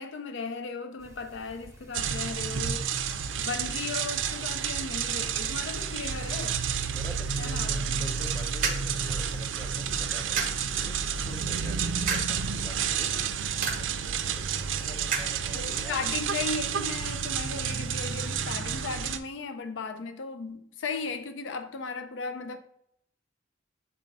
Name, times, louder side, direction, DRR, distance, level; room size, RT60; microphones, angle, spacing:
voice 1, 0.0-2.9 3.4-6.6 7.4-8.0 15.5-22.6, left 4 dB, 70° left, 0.4 m, -36 dB
sound 1, 1.0-18.4, right 1 dB, 15° right, 0.9 m, -52 dB
sound 2, 1.9-19.2, right 7 dB, 75° right, 0.4 m, -30 dB
voice 2, 6.9-13.3 13.7-16.1, equal, 15° left, 0.8 m, -47 dB
sound 3, 8.1-17.5, right 5 dB, 45° right, 0.8 m, -38 dB
7.3 x 2.5 x 5.3 m
head